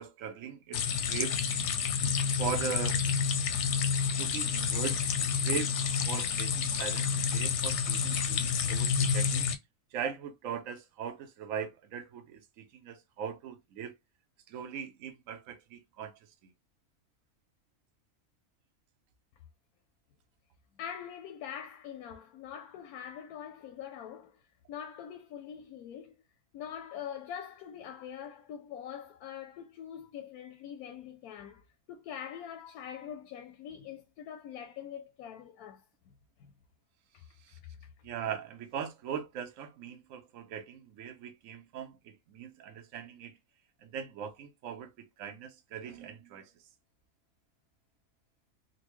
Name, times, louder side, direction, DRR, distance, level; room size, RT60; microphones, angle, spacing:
voice 1, 0.0-1.4 2.4-3.0 4.2-5.7 6.0-9.5 9.9-13.9 14.5-16.1 37.4-37.6 38.0-43.4 43.8-46.5, right 8 dB, 70° right, 1.0 m, -40 dB
sound 1, 0.7-9.5, left 6 dB, 65° left, 0.8 m, -29 dB
voice 2, 20.8-24.4 24.7-26.1 26.5-35.8 36.4-36.5 37.1-37.2 37.8-37.9, left 9 dB, 90° left, 1.1 m, -44 dB
3.9 x 2.1 x 3.0 m
omnidirectional pair, 1.5 m